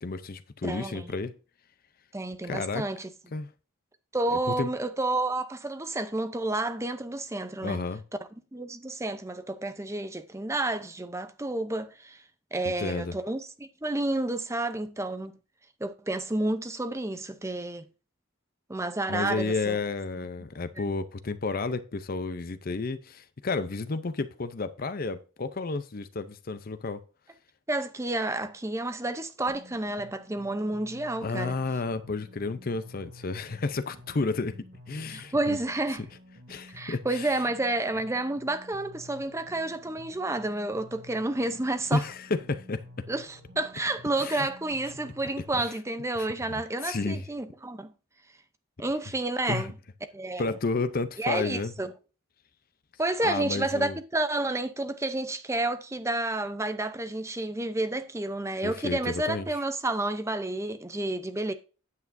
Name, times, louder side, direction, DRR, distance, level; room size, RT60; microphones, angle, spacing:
voice 1, 0.0-1.3 2.4-2.9 3.3-3.5 4.6-4.7 7.6-8.0 12.8-13.1 19.1-27.0 31.2-34.6 34.9-35.6 36.5-37.4 41.9-43.1 44.2-44.5 45.6-45.7 46.1-46.3 46.8-47.2 49.5-49.7 50.4-51.7 53.2-54.0 58.6-59.5, left 3 dB, 45° left, 0.6 m, -31 dB
voice 2, 0.6-1.1 2.1-3.1 4.1-7.8 8.5-12.2 12.5-15.3 15.8-17.8 18.7-19.8 27.7-31.6 35.0-36.0 36.7-42.0 43.1-47.9 48.8-49.7 50.1-50.5 51.2-51.9 53.0-61.5, right 2 dB, 15° right, 0.6 m, -30 dB
sound 1, 29.5-45.5, equal, 50° right, 2.4 m, -51 dB
9.5 x 8.3 x 2.6 m
head